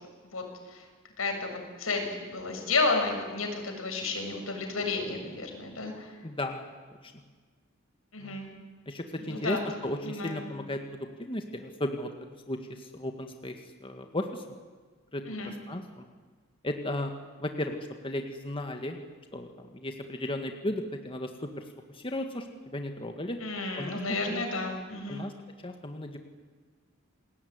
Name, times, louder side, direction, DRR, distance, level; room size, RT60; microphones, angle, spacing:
voice 1, 0.2-0.9 1.2-6.2 8.1-8.5 9.2-9.6 10.0-10.4 15.3-15.5 23.4-25.2, left 3 dB, 90° left, 3 dB, 6.9 m, -32 dB
voice 2, 6.2-6.7 7.0-7.1 8.2-8.4 8.9-12.1 12.5-14.4 15.1-16.1 16.6-17.1 17.4-17.8 18.0-19.0 19.3-23.4 23.8-24.0 24.3-24.4 25.1-25.3 25.6-26.2, left 1 dB, 25° left, 5 dB, 1.9 m, -35 dB
28.0 x 20.5 x 9.7 m, 1.4 s
head